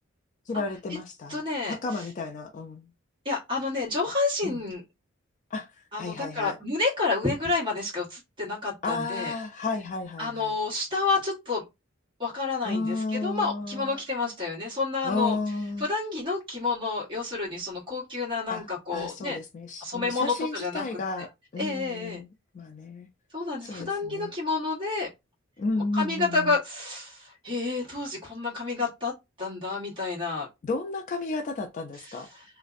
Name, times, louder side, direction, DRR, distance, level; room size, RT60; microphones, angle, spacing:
voice 1, 0.5-2.9 4.4-4.6 5.5-5.7 6.0-6.6 8.8-10.5 12.6-14.0 15.0-15.9 18.5-18.6 18.9-22.3 22.5-23.1 23.6-24.3 25.6-26.6 30.6-32.3, left 3 dB, 40° left, 0.3 m, -32 dB
voice 2, 1.3-2.0 3.2-4.8 5.9-9.3 10.2-11.6 12.2-15.4 15.8-19.4 19.8-20.8 21.6-22.2 23.3-25.1 25.9-29.1 29.4-30.5 32.0-32.4, left 3 dB, 25° right, 1.2 m, -29 dB
2.4 x 2.1 x 2.4 m
head